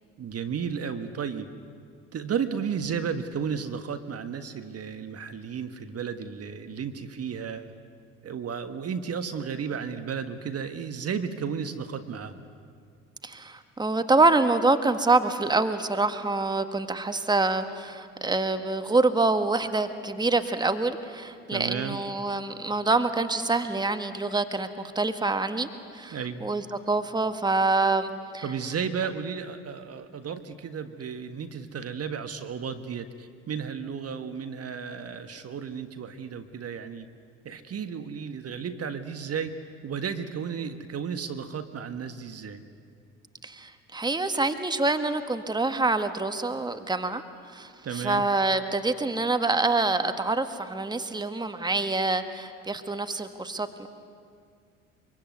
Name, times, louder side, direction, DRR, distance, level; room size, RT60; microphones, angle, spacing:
voice 1, 0.2-1.5 2.1-7.7 8.2-12.4 21.5-22.0 26.1-26.5 28.4-37.1 37.4-39.5 39.8-42.6 47.8-48.2, right 6 dB, 40° right, 9 dB, 1.6 m, -33 dB
voice 2, 13.2-28.5 43.4-47.2 47.5-53.9, right 3 dB, 10° right, 9 dB, 1.7 m, -26 dB
24.5 x 24.0 x 9.5 m, 2.2 s
hypercardioid pair, 60°, 37 cm